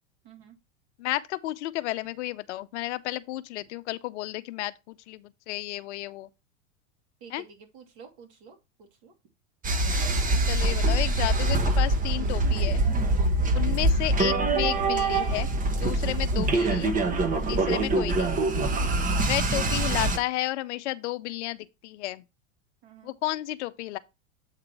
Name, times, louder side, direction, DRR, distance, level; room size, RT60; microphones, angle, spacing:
voice 1, 0.2-0.6 7.2-9.1 13.5-13.8 18.8-19.1 22.8-23.1, right 6 dB, 60° right, 2.8 m, -50 dB
voice 2, 1.0-6.3 7.3-7.4 10.5-12.8 13.5-15.5 15.8-17.0 17.3-18.4 19.3-21.6 21.8-22.2 23.0-24.0, left 16 dB, 65° left, 0.6 m, -32 dB
sound 1, 9.6-20.2, right 2 dB, 20° right, 1.0 m, -24 dB
8.0 x 3.7 x 4.3 m
hypercardioid pair, 90°, 38 cm